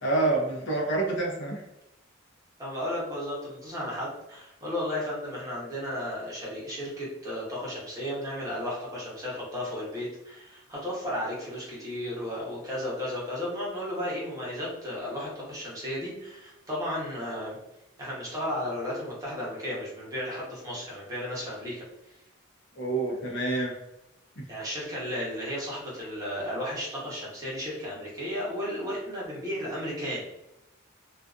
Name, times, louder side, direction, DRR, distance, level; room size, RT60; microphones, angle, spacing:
voice 1, 0.0-1.6 22.8-23.7 24.4-24.5, right 2 dB, 65° left, -2 dB, 0.8 m, -27 dB
voice 2, 2.6-17.6 18.0-21.8 24.5-30.2, left 1 dB, 20° right, -6 dB, 0.9 m, -34 dB
2.5 x 2.4 x 2.4 m, 0.92 s
head